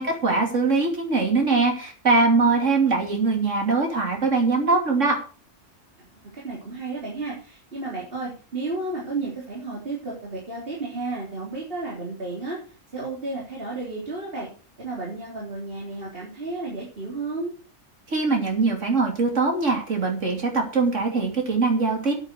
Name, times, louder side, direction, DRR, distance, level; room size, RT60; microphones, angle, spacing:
voice 1, 0.0-5.2 18.1-22.1, right 3 dB, 70° right, 2 dB, 3.2 m, -22 dB
voice 2, 6.1-12.6 12.9-14.5 14.8-17.5, right 3 dB, 45° right, -4 dB, 3.6 m, -32 dB
9.0 x 8.5 x 6.5 m, 0.38 s
omnidirectional pair, 1.3 m